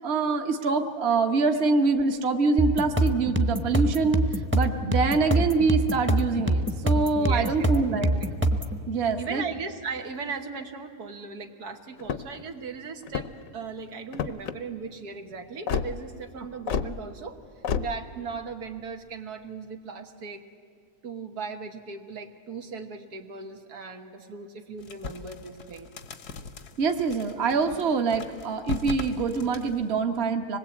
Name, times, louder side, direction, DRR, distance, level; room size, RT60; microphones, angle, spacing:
voice 1, 0.0-4.3 4.5-8.2 8.9-9.4 26.8-30.6, right 4 dB, 45° right, 5 dB, 1.4 m, -25 dB
sound 1, 2.6-8.8, right 1 dB, 10° right, 0.9 m, -25 dB
voice 2, 7.2-7.7 9.2-17.4 17.8-20.4 21.0-25.9, right 5 dB, 85° right, 4 dB, 1.9 m, -37 dB
sound 2, 12.0-12.4 13.0-13.5 14.1-14.6 15.7-15.9 16.7-16.9 17.6-17.9, left 7 dB, 65° left, 1.1 m, -29 dB
sound 3, 24.8-29.9, left 4 dB, 85° left, 1.7 m, -39 dB
25.5 x 20.5 x 8.5 m, 2.4 s
omnidirectional pair, 1.6 m